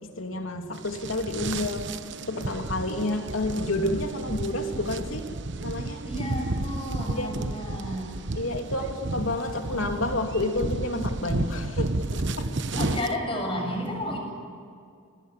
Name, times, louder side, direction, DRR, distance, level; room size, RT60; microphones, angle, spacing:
voice 1, 0.0-1.9 2.2-5.3 5.6-6.0 7.2-7.3 8.4-12.6, left 2 dB, 80° left, 4 dB, 3.0 m, -30 dB
sound 1, 0.8-13.1, right 2 dB, 60° right, 1.0 m, -32 dB
voice 2, 6.1-8.1 8.3-8.5 11.3-11.4 12.0-14.2, equal, 25° left, 1 dB, 7.5 m, -32 dB
28.5 x 20.0 x 7.6 m, 2.3 s
head